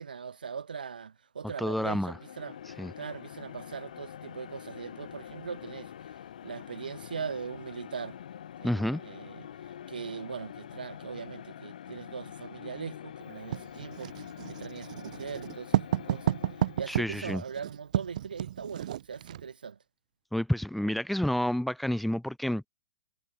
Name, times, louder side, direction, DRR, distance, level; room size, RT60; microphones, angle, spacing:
voice 1, 0.0-2.6 3.0-6.1 6.4-8.2 8.6-9.5 9.9-14.1 14.5-16.4 16.8-19.8, right 6 dB, 80° right, 3.5 m, -40 dB
voice 2, 1.6-2.2 2.8-2.9 8.6-9.0 16.9-17.4 20.3-22.7, left 1 dB, ahead, 0.7 m, -29 dB
sound 1, 1.9-17.1, left 9 dB, 65° left, 6.2 m, -45 dB
Writing, 13.5-19.5, right 11 dB, 60° right, 0.7 m, -32 dB
hypercardioid pair, 130°, 5 cm